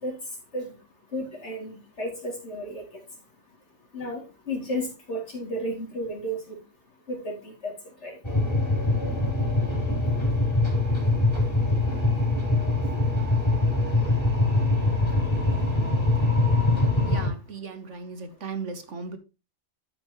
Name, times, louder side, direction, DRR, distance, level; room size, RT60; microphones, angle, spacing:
voice 1, 1.1-2.8 3.9-6.6 7.1-7.7 8.0-8.2, equal, 55° left, 3.7 m, -33 dB
sound 1, 8.2-17.3, left 2 dB, 20° left, 3.4 m, -23 dB
voice 2, 17.0-19.2, right 4 dB, 65° right, 1.3 m, -37 dB
12.5 x 6.0 x 3.1 m
omnidirectional pair, 1.4 m